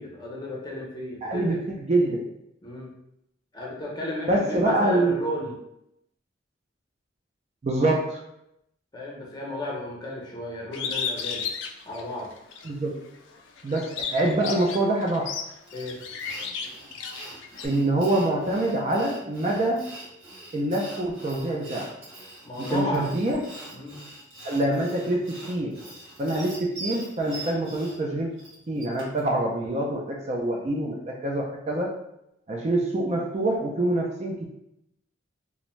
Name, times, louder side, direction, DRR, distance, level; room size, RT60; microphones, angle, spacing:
voice 1, 0.0-1.6 2.6-2.9 3.5-5.6 7.7-7.9 8.9-11.5 11.9-12.3 15.7-16.0 22.4-23.2 23.7-24.0, left 1 dB, 20° left, -3 dB, 0.6 m, -34 dB
voice 2, 1.2-2.3 4.3-5.2 7.6-8.2 12.6-13.0 13.6-15.3 17.6-19.9 20.5-21.9 22.6-23.4 24.4-25.8 26.2-28.4 28.7-32.0 32.5-34.5, right 1 dB, 35° right, 0 dB, 0.3 m, -25 dB
Bird, 10.7-12.7 13.2-17.7, left 6 dB, 70° left, 0.3 m, -34 dB
Sawing, 15.7-29.3, right 2 dB, 75° right, 1.0 m, -43 dB
2.5 x 2.1 x 3.0 m, 0.81 s
head